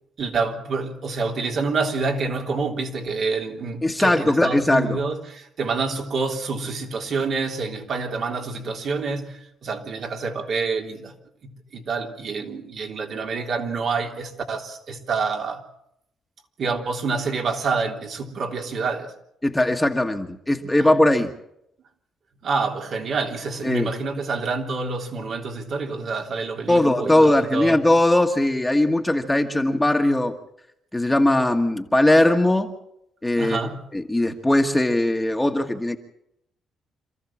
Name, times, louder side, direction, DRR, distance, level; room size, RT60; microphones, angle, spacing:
voice 1, 0.2-11.1 11.4-15.6 16.6-19.1 20.8-20.9 22.4-27.8 33.4-33.8, right 4 dB, 60° right, 3.5 m, -27 dB
voice 2, 3.8-5.0 19.4-21.3 23.6-23.9 26.7-30.3 30.9-32.7 33.2-33.6 33.9-36.0, left 1 dB, 10° left, 1.5 m, -19 dB
27.0 x 14.5 x 7.4 m
cardioid pair, 90°, 0 cm